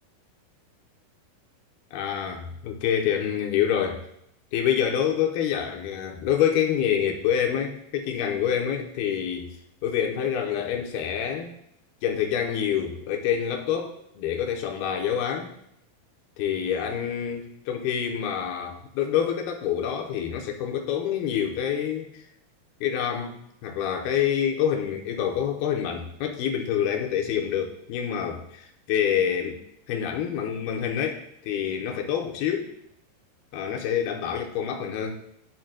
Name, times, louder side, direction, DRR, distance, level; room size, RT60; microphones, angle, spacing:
voice 1, 1.9-4.0 4.5-9.5 9.8-11.5 12.0-15.5 16.4-22.1 22.8-23.4 23.6-29.6 29.9-32.7 33.5-35.2, left 9 dB, 80° left, 2 dB, 2.7 m, -27 dB
9.0 x 8.9 x 2.2 m, 0.72 s
omnidirectional pair, 4.6 m